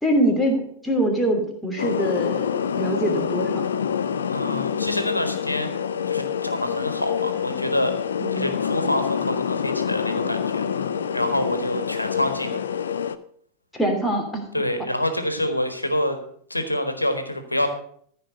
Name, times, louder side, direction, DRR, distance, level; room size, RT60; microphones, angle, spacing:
voice 1, 0.0-3.7 8.2-8.5 13.7-14.4, right 1 dB, 5° left, 0 dB, 2.8 m, -24 dB
sound 1, 1.8-13.2, left 7 dB, 65° left, 0.5 m, -26 dB
voice 2, 4.3-5.7 6.1-8.0 8.3-10.6 11.1-12.7 14.5-16.2 16.5-17.7, left 1 dB, 85° left, 8 dB, 1.5 m, -26 dB
14.0 x 5.3 x 6.7 m, 0.62 s
figure-of-eight pair, 90°, 0 cm